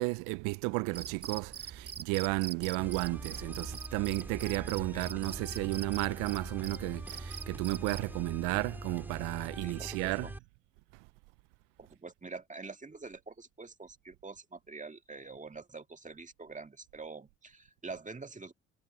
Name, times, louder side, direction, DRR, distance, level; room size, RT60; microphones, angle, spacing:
voice 1, 0.0-10.3, right 28 dB, 80° right, 0.5 m, -33 dB
Cricket, 0.9-8.1, right 7 dB, 50° right, 1.7 m, -44 dB
sound 1, 2.8-10.4, right 1 dB, 5° right, 3.2 m, -43 dB
voice 2, 9.6-10.3 11.8-18.5, right 4 dB, 25° right, 2.1 m, -46 dB
hypercardioid pair, 50°, 32 cm